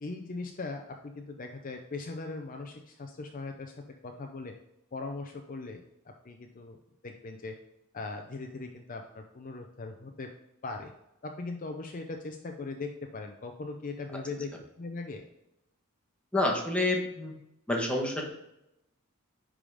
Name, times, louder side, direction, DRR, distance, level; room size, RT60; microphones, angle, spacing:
voice 1, 0.0-4.6 4.9-6.8 7.0-7.6 7.9-10.3 10.6-10.9 11.2-14.5 14.8-15.2, left 3 dB, 40° left, 4 dB, 0.6 m, -39 dB
voice 2, 16.3-17.3 17.7-18.3, left 2 dB, 5° left, -1 dB, 1.3 m, -28 dB
10.0 x 3.7 x 4.9 m, 0.85 s
head